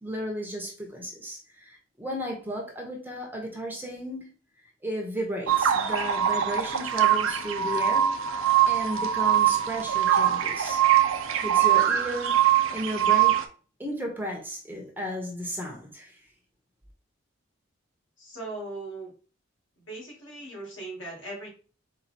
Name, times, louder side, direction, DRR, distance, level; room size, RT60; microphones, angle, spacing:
voice 1, 0.0-4.3 4.8-8.1 8.7-10.8 11.4-12.4 12.7-13.4 13.8-16.2, equal, 10° right, 0.9 m, -34 dB
sound 1, 5.5-13.4, right 10 dB, 90° right, 0.5 m, -23 dB
voice 2, 18.2-19.1 19.8-21.5, right 2 dB, 70° left, 2.2 m, -39 dB
4.5 x 2.2 x 4.1 m
head